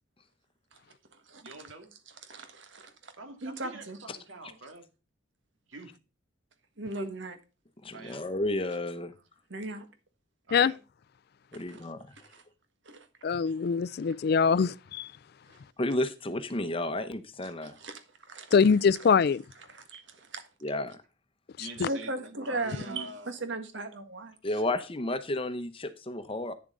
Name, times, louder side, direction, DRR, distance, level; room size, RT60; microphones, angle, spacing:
voice 1, 1.4-1.9 3.2-4.9 5.7-5.9 7.9-8.3 10.5-10.8 21.6-23.3, right 2 dB, 90° right, 2.2 m, -45 dB
voice 2, 2.3-3.1 3.4-4.0 6.8-7.4 9.5-9.8 11.5-11.8 12.3-12.4 12.8-13.1 15.5-15.6 17.4-18.6 19.7-20.4 21.8-24.3, right 2 dB, 65° right, 1.6 m, -38 dB
voice 3, 7.8-9.1 11.5-12.0 15.8-17.8 20.6-21.0 24.4-26.5, left 1 dB, 30° left, 0.8 m, -32 dB
voice 4, 13.2-15.1 18.5-19.4 21.8-21.9, left 6 dB, 55° left, 0.4 m, -23 dB
9.6 x 7.1 x 3.8 m
head